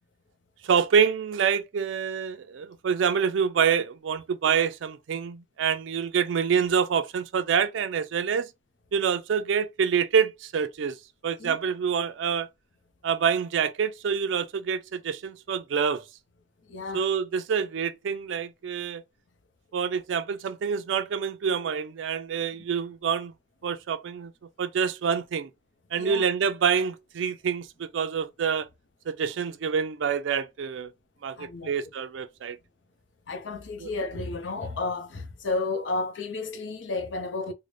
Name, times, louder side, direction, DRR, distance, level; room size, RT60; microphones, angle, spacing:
voice 1, 0.6-8.5 8.9-11.0 11.2-12.5 13.0-16.0 16.9-19.0 19.7-23.3 23.6-24.3 24.6-25.5 25.9-28.7 29.1-30.9 31.2-32.6 33.8-33.9, right 7 dB, 85° right, 0.4 m, -26 dB
voice 2, 16.7-17.0 26.0-26.2 31.4-31.7 33.3-37.5, left 3 dB, 80° left, 0.7 m, -32 dB
3.8 x 2.1 x 3.2 m
head